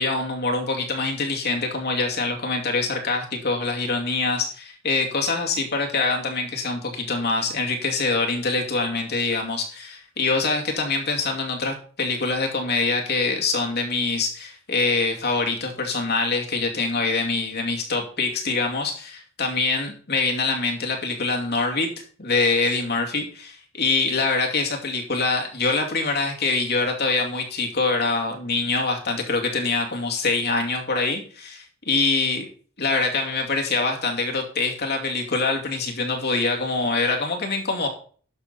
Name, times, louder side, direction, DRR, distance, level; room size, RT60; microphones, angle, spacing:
voice 1, 0.0-32.5 32.8-37.9, left 3 dB, 50° left, 2 dB, 2.5 m, -24 dB
12.0 x 7.3 x 4.2 m, 0.43 s
head